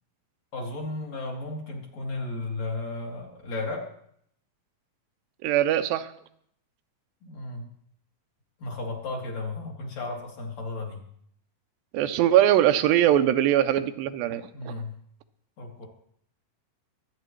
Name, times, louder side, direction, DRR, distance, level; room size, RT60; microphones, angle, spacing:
voice 1, 0.5-3.9 7.2-7.7 8.6-11.0 14.5-14.9 15.6-15.9, left 2 dB, 55° left, -1 dB, 3.2 m, -34 dB
voice 2, 5.4-6.1 11.9-14.7, right 11 dB, 90° right, 9 dB, 2.4 m, -22 dB
24.0 x 9.2 x 3.1 m, 0.68 s
omnidirectional pair, 4.0 m